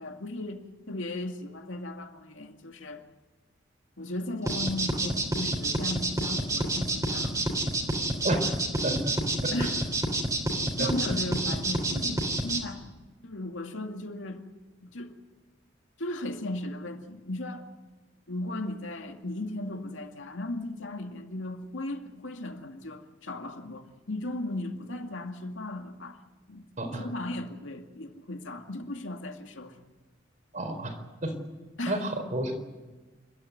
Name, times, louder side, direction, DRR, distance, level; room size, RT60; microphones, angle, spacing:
voice 1, 0.0-3.0 4.0-7.7 9.5-9.8 10.8-12.8 13.2-14.4 14.8-15.1 16.0-17.7 18.3-26.2 26.5-26.6 27.0-29.8 31.8-32.0, left 1 dB, 90° left, 2.3 m, -36 dB
sound 1, 4.4-12.6, right 1 dB, 20° right, 3.3 m, -28 dB
voice 2, 8.8-9.1 9.4-9.5 10.8-10.9 26.8-27.1 30.5-31.0 31.2-31.3 31.9-32.5, right 1 dB, 40° right, 4.2 m, -30 dB
28.5 x 13.5 x 9.5 m
head